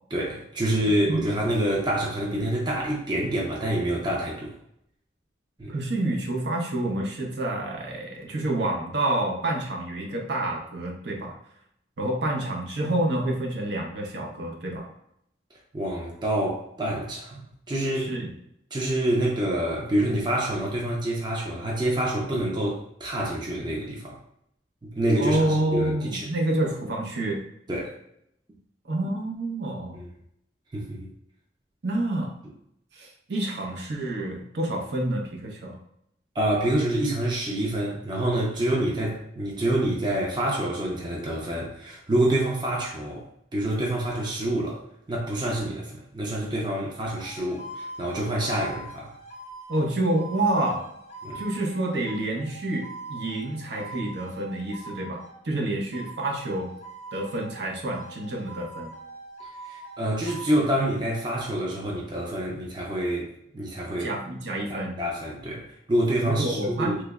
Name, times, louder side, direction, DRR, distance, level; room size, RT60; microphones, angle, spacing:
voice 1, 0.1-4.5 5.6-5.7 15.7-18.1 18.7-24.2 24.8-26.2 27.7-27.9 29.9-30.1 30.7-31.1 36.4-43.2 43.5-44.8 45.1-49.1 51.2-51.4 59.6-63.3 63.5-64.1 64.7-67.0, right 1 dB, 25° right, -2 dB, 0.5 m, -27 dB
voice 2, 5.7-11.4 12.0-14.9 17.9-18.3 25.2-27.4 28.8-30.0 31.8-32.4 32.9-35.8 49.7-50.9 51.3-56.8 57.1-58.9 64.0-65.0 66.2-67.0, right 1 dB, 65° right, 0 dB, 0.7 m, -28 dB
sound 1, 47.1-55.4 55.9-57.6 57.9-60.5, right 2 dB, 35° left, 0.5 m, -42 dB
3.3 x 2.0 x 3.4 m, 0.75 s
head